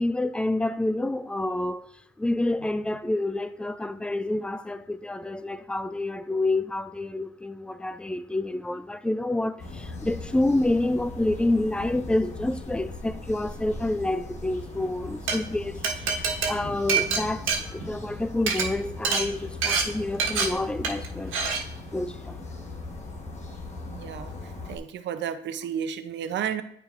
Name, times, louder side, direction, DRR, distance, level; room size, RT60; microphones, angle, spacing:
voice 1, 0.0-1.9 2.2-21.4 21.9-22.4, left 2 dB, 5° left, 0.3 m, -28 dB
sound 1, 9.6-24.8, left 3 dB, 35° left, 1.2 m, -39 dB
Glass, 15.1-15.3 15.8-18.1 18.4-18.6 19.0-19.2 19.6-19.8 20.2-20.4 20.8-21.1 21.3-21.6, right 5 dB, 85° right, 1.4 m, -25 dB
voice 2, 23.9-24.3 24.7-26.6, right 8 dB, 65° right, 0.6 m, -32 dB
9.0 x 4.8 x 2.5 m
cardioid pair, 90°, 20 cm